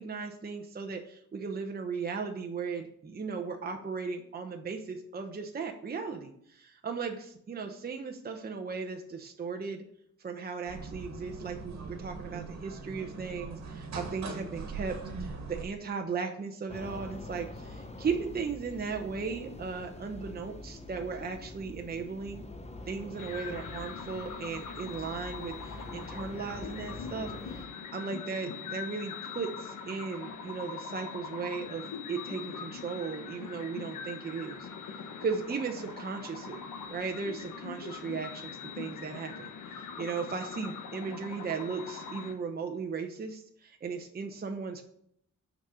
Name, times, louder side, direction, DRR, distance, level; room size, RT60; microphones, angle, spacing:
voice 1, 0.0-9.8 10.2-22.4 22.9-44.8, right 5 dB, 30° right, 3 dB, 0.9 m, -37 dB
sound 1, 10.7-15.6, right 4 dB, 60° right, 1.6 m, -41 dB
sound 2, 16.7-27.7, left 2 dB, 20° left, 1.0 m, -45 dB
sound 3, 23.1-42.3, left 6 dB, 85° left, 1.4 m, -42 dB
6.4 x 5.3 x 6.8 m, 0.69 s
cardioid pair, 125°, 30 cm